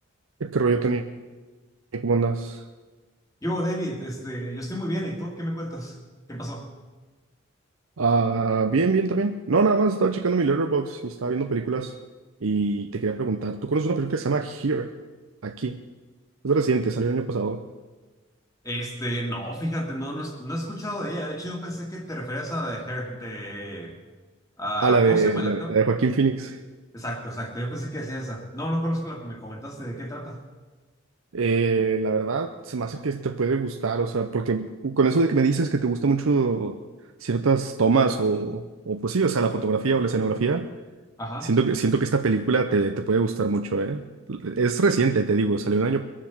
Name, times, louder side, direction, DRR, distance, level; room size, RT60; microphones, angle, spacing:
voice 1, 0.4-1.0 1.9-2.6 8.0-11.9 12.4-14.9 15.4-15.8 16.4-17.6 24.8-26.6 31.3-36.8 37.2-40.7 41.4-46.0, right 4 dB, 90° right, 6 dB, 0.7 m, -23 dB
voice 2, 3.4-6.0 6.3-6.7 18.6-24.0 24.6-25.7 26.9-30.4 41.2-41.5, equal, 15° left, 1 dB, 2.0 m, -31 dB
22.0 x 7.5 x 7.2 m, 1.3 s
head